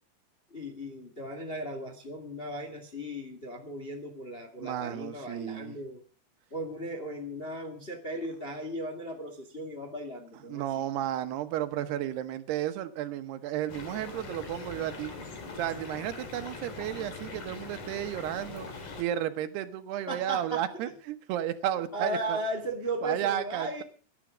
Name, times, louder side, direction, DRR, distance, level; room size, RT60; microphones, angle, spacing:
voice 1, 0.5-6.0 6.5-10.6 20.1-20.6 21.9-23.8, right 1 dB, 20° left, 4 dB, 1.5 m, -36 dB
voice 2, 4.6-5.8 10.5-15.1 15.6-18.7 19.0-22.4 23.0-23.8, right 11 dB, 80° right, 10 dB, 3.2 m, -33 dB
sound 1, 13.7-19.0, left 4 dB, 50° left, 4.2 m, -42 dB
18.0 x 10.5 x 6.2 m, 0.40 s
omnidirectional pair, 4.7 m